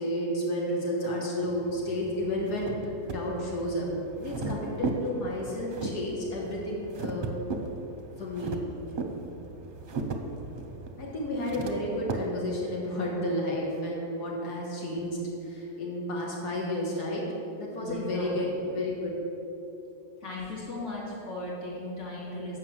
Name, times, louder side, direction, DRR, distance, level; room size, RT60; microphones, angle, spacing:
voice 1, 0.0-3.9 4.1-7.3 8.2-8.6 11.0-17.2 17.6-19.1, left 1 dB, 90° left, -3 dB, 1.9 m, -31 dB
sound 1, 1.5-12.1, right 3 dB, 45° right, 0.7 m, -37 dB
voice 2, 17.8-18.4 20.2-22.6, left 1 dB, 50° left, -5 dB, 2.4 m, -37 dB
7.3 x 5.9 x 7.6 m, 2.9 s
omnidirectional pair, 1.7 m